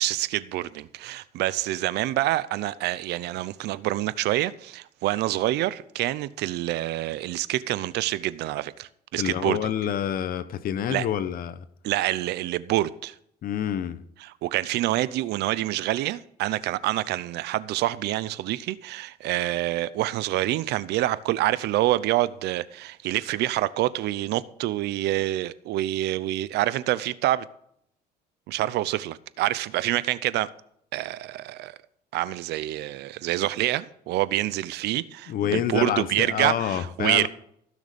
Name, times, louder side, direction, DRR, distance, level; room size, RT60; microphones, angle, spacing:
voice 1, 0.0-9.7 10.9-11.1 11.8-13.1 14.4-27.5 28.5-30.5 30.9-31.8 32.1-37.3, right 15 dB, 80° right, 0.7 m, -27 dB
voice 2, 9.2-11.6 13.4-14.0 35.3-37.3, left 10 dB, 60° left, 1.0 m, -27 dB
16.0 x 6.6 x 5.2 m
cardioid pair, 110°, 17 cm